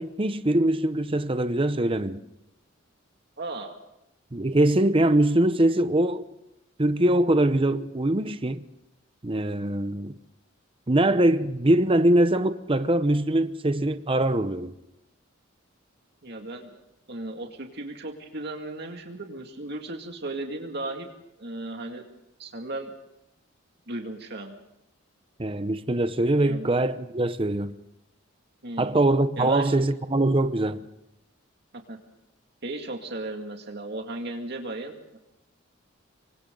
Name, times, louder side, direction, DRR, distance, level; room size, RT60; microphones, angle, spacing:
voice 1, 0.0-2.2 4.3-6.2 6.8-8.6 9.2-10.1 10.9-14.7 25.4-27.7 28.8-30.8, right 1 dB, 25° right, 0.9 m, -23 dB
voice 2, 3.4-3.8 16.2-16.8 17.1-21.1 21.4-22.1 22.4-22.9 23.9-24.5 26.4-26.7 28.6-29.0 29.4-29.7 31.7-32.0 32.6-35.2, right 2 dB, 55° right, 2.2 m, -35 dB
27.0 x 24.5 x 3.9 m
head